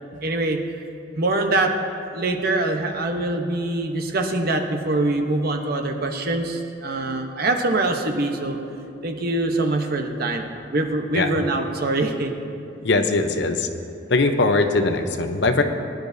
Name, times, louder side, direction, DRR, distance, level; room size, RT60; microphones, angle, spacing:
voice 1, 0.2-0.6 1.2-1.7 2.1-8.6 9.0-12.3 12.9-13.1, right 2 dB, 50° right, 4 dB, 1.0 m, -24 dB
voice 2, 12.8-13.7 14.1-15.6, left 3 dB, 60° left, 6 dB, 0.8 m, -20 dB
21.0 x 10.5 x 2.7 m, 2.5 s
head